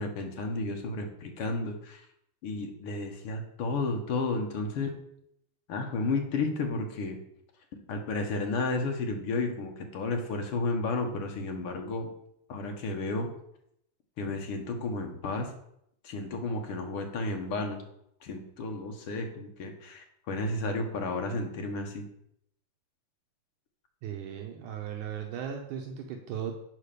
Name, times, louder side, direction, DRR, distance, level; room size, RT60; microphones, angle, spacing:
voice 1, 0.0-2.0 2.4-4.9 5.7-7.2 7.9-12.1 12.5-13.3 14.2-15.5 16.0-17.8 18.2-22.0, left 3 dB, 60° left, 3 dB, 1.6 m, -32 dB
voice 2, 24.0-26.5, right 8 dB, 80° right, 3 dB, 2.3 m, -37 dB
7.6 x 5.0 x 6.7 m, 0.75 s
omnidirectional pair, 3.7 m